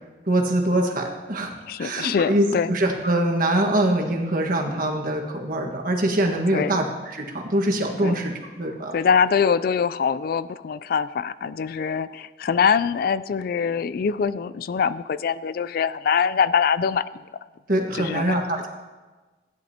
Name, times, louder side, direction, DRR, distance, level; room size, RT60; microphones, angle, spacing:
voice 1, 0.3-1.5 1.8-9.0 17.7-18.7, right 1 dB, 50° right, 1 dB, 1.5 m, -23 dB
voice 2, 1.7-2.7 6.5-6.8 8.0-8.1 8.9-17.0 17.9-18.4, left 6 dB, 55° left, 16 dB, 0.3 m, -23 dB
16.5 x 10.5 x 2.8 m, 1.3 s
head